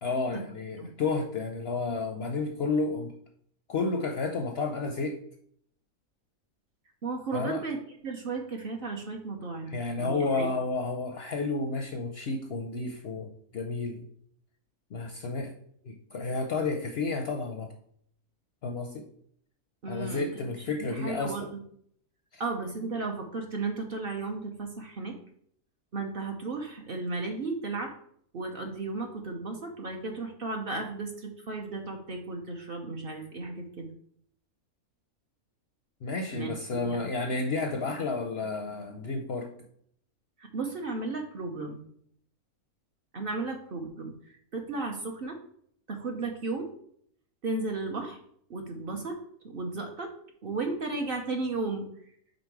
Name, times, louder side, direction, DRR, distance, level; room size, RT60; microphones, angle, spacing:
voice 1, 0.0-3.1 3.7-5.2 7.3-7.6 9.7-14.1 14.9-15.5 15.8-17.7 18.6-19.0 19.9-21.5 22.3-22.4 36.0-39.5, left 3 dB, 60° left, 4 dB, 0.7 m, -31 dB
voice 2, 7.0-10.5 19.8-20.4 20.8-21.6 22.4-25.2 25.9-27.9 28.3-33.9 36.3-37.0 40.4-41.8 43.1-44.1 44.5-45.4 45.9-46.7 47.4-48.2 48.5-49.2 49.4-50.1 50.4-51.9, right 3 dB, 45° right, 2 dB, 0.9 m, -34 dB
5.3 x 4.1 x 4.6 m, 0.65 s
omnidirectional pair, 1.5 m